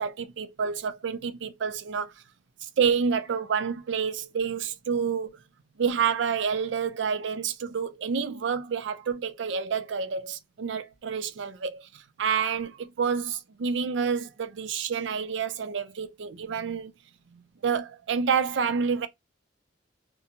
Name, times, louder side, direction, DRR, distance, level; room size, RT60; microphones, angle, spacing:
voice 1, 0.0-2.1 2.6-5.4 5.8-16.9 17.3-19.1, right 6 dB, 70° right, 0.4 m, -28 dB
2.7 x 2.2 x 2.8 m
head